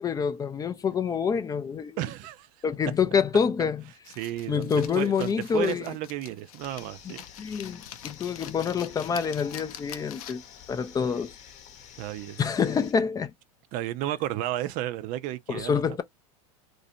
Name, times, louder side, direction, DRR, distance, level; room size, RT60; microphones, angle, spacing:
voice 1, 0.0-2.0 2.6-3.9 4.5-6.0 7.0-10.4 10.7-11.3 12.4-13.3 15.5-16.0, left 6 dB, 20° left, 0.4 m, -27 dB
voice 2, 2.0-2.5 4.2-7.2 12.0-12.4 13.7-15.7, right 13 dB, 50° right, 0.5 m, -32 dB
sound 1, 4.1-10.6, left 11 dB, 80° left, 0.6 m, -45 dB
sound 2, 6.6-12.9, left 8 dB, 40° left, 0.9 m, -49 dB
3.1 x 2.6 x 2.6 m
hypercardioid pair, 110°, 18 cm